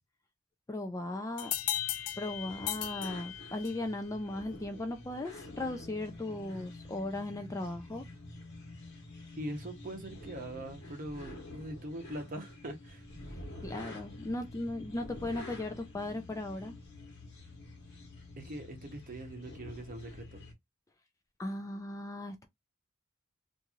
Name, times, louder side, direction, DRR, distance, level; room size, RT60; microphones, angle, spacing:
voice 1, 0.7-1.5 2.2-8.1 13.6-16.7 21.4-22.5, left 2 dB, 15° left, 0.3 m, -37 dB
sound 1, 1.4-3.9, left 12 dB, 75° left, 0.5 m, -36 dB
sound 2, 1.5-20.5, left 2 dB, 55° left, 1.2 m, -48 dB
voice 2, 9.4-13.0 18.4-20.4, right 1 dB, 40° right, 0.8 m, -42 dB
2.9 x 2.6 x 2.4 m
head